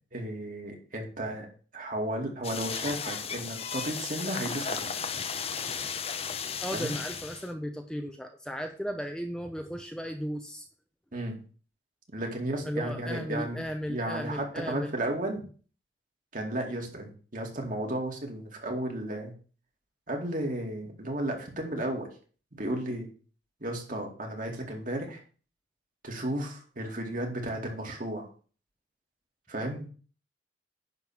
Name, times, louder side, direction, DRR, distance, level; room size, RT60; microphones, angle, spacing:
voice 1, 0.1-1.5 1.7-4.9 6.7-7.0 11.1-11.4 12.1-13.6 13.9-15.4 16.3-19.3 20.1-22.1 22.5-23.1 23.6-25.2 26.0-28.3 29.5-29.9, right 1 dB, 45° right, 1 dB, 2.5 m, -34 dB
sound 1, 2.4-7.5, left 6 dB, 35° left, 0.7 m, -35 dB
voice 2, 6.6-10.7 12.6-14.9, equal, 5° left, 4 dB, 0.7 m, -35 dB
10.5 x 3.8 x 7.4 m, 0.40 s
head